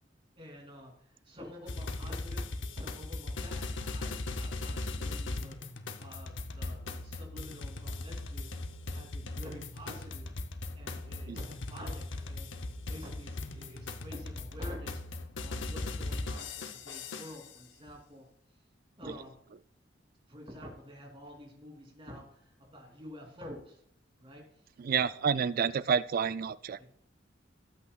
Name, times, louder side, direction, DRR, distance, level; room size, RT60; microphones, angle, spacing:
voice 1, 0.3-5.6 6.0-8.5 8.9-10.3 10.7-12.5 12.9-18.2 19.0-19.4 20.3-23.8 24.2-24.4 25.0-25.2 26.8-26.9, equal, 30° right, 0 dB, 3.3 m, -49 dB
sound 1, 1.7-17.6, left 2 dB, 70° left, 0.8 m, -39 dB
voice 2, 24.8-26.8, right 7 dB, 50° right, 16 dB, 0.4 m, -29 dB
18.5 x 8.4 x 2.4 m, 0.68 s
head